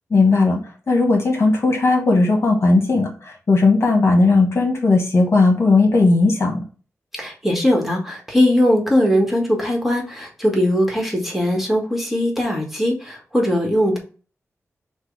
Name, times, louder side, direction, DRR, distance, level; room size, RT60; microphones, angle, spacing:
voice 1, 0.1-0.6 0.9-6.6, left 3 dB, 50° left, 1 dB, 1.2 m, -16 dB
voice 2, 7.2-14.0, left 1 dB, 5° right, -1 dB, 1.4 m, -20 dB
5.8 x 2.2 x 3.3 m, 0.38 s
cardioid pair, 70°, 5 cm